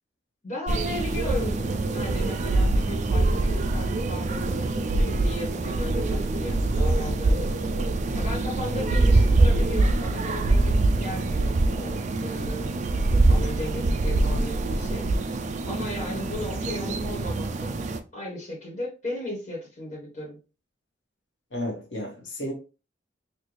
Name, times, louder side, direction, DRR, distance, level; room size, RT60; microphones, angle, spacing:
voice 1, 0.4-7.5 8.1-15.1 15.6-17.8 18.1-20.4, left 1 dB, 40° left, 1.4 m, -36 dB
sound 1, 0.7-18.0, right 2 dB, 40° right, 0.3 m, -24 dB
voice 2, 21.5-22.5, left 1 dB, 70° left, 1.3 m, -32 dB
4.1 x 2.5 x 3.1 m
head